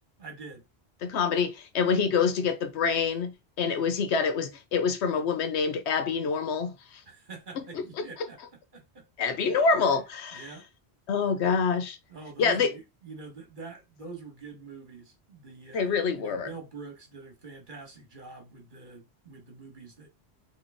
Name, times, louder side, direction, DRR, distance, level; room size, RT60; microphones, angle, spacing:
voice 1, 0.2-0.6 7.0-9.1 9.7-9.9 10.3-10.7 12.1-20.1, right 4 dB, 50° right, 1.5 m, -45 dB
voice 2, 1.0-3.3 3.6-7.0 9.2-10.4 11.1-12.0 12.4-12.7 15.7-16.5, left 5 dB, 80° left, 1.0 m, -26 dB
3.8 x 3.0 x 3.5 m
omnidirectional pair, 1.1 m